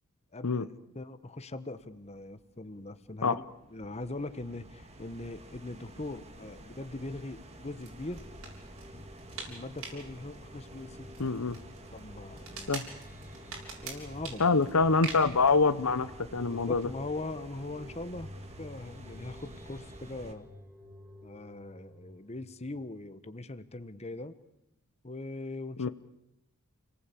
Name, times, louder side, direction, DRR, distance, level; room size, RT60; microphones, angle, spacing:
voice 1, 0.3-0.7 0.9-3.5 3.7-8.2 8.9-9.1 9.5-11.1 11.9-12.8 13.8-14.6 16.4-18.3 18.6-20.5 21.2-24.4 25.0-25.9, left 2 dB, 30° left, 12 dB, 1.2 m, -41 dB
sound 1, 1.8-20.3, right 1 dB, 30° right, 2.3 m, -51 dB
sound 2, 7.8-15.5, right 4 dB, 75° right, 7.4 m, -46 dB
sound 3, 8.1-23.6, left 1 dB, 10° right, 3.9 m, -52 dB
voice 2, 11.2-11.6 12.7-12.8 14.4-16.9 25.8-25.9, left 4 dB, 80° left, 14 dB, 1.0 m, -25 dB
30.0 x 19.0 x 8.5 m, 0.87 s
head